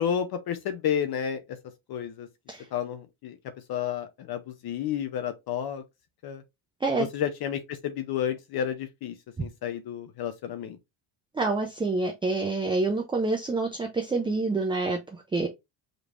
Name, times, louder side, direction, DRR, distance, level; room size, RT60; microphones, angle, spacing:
voice 1, 0.0-1.6 1.9-2.3 2.7-3.4 3.7-5.8 6.2-6.4 7.0-10.8, left 9 dB, 50° left, 0.7 m, -31 dB
voice 2, 11.3-15.0 15.3-15.5, right 3 dB, 10° right, 0.5 m, -27 dB
5.2 x 3.1 x 2.5 m
cardioid pair, 130°, 48 cm